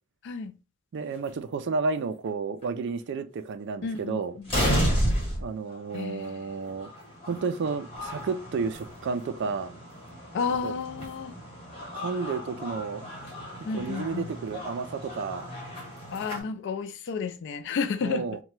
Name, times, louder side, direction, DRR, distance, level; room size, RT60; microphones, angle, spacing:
voice 1, 0.2-0.5 3.8-4.5 5.9-6.5 10.3-11.4 13.6-14.3 16.1-18.4, left 5 dB, 55° left, 0.3 m, -32 dB
voice 2, 0.9-4.3 5.4-6.9 7.3-9.7 10.6-10.7 11.9-13.0 13.7-15.4 18.0-18.4, right 4 dB, 55° right, 0.3 m, -31 dB
sound 1, 1.1-1.3 2.2-2.3 2.6-2.7 3.9-4.0 4.4-16.4, equal, 25° left, 1.2 m, -33 dB
2.8 x 2.2 x 3.1 m
head